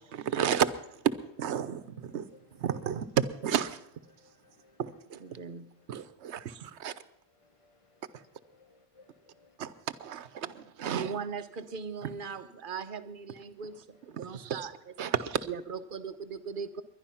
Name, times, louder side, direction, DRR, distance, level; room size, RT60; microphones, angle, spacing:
voice 1, 0.0-2.3 2.6-3.9 4.8-5.2 5.9-6.9 8.1-8.2 9.6-11.1 14.3-14.7 15.0-15.5, right 8 dB, 85° right, 1.1 m, -32 dB
voice 2, 4.1-4.8 5.3-5.5 5.9-6.0 7.4-9.6, left 3 dB, 35° left, 0.6 m, -60 dB
voice 3, 5.2-5.7 10.8-14.8 15.5-16.8, right 6 dB, 55° right, 1.0 m, -39 dB
21.0 x 11.0 x 5.8 m
omnidirectional pair, 1.1 m